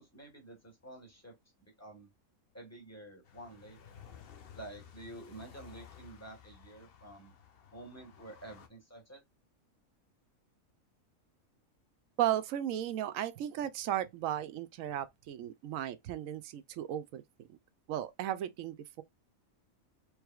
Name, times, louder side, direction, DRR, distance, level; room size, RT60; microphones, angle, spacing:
voice 1, 0.0-2.1 2.5-4.0 4.5-7.3 7.7-9.2, right 1 dB, 10° left, 1.4 m, -50 dB
sound 1, 3.2-8.7, left 8 dB, 50° left, 0.8 m, -55 dB
voice 2, 12.2-17.2 17.5-17.6 17.9-19.0, right 11 dB, 75° right, 1.0 m, -35 dB
4.8 x 3.3 x 2.3 m
omnidirectional pair, 1.4 m